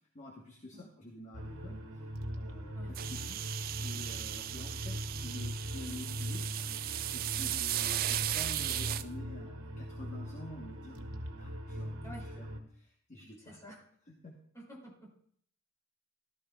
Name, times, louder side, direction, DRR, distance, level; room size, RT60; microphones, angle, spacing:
voice 1, 0.1-6.4 6.9-11.0 11.4-13.6 14.1-14.3, left 1 dB, 35° left, -1 dB, 1.1 m, -49 dB
sound 1, 1.3-12.6, equal, 90° right, 1.3 m, -40 dB
sound 2, 2.9-9.0, right 13 dB, 45° right, 0.3 m, -36 dB
voice 2, 13.4-13.8 14.5-15.1, right 1 dB, 15° left, -4 dB, 2.9 m, -50 dB
15.5 x 12.5 x 2.3 m, 0.63 s
head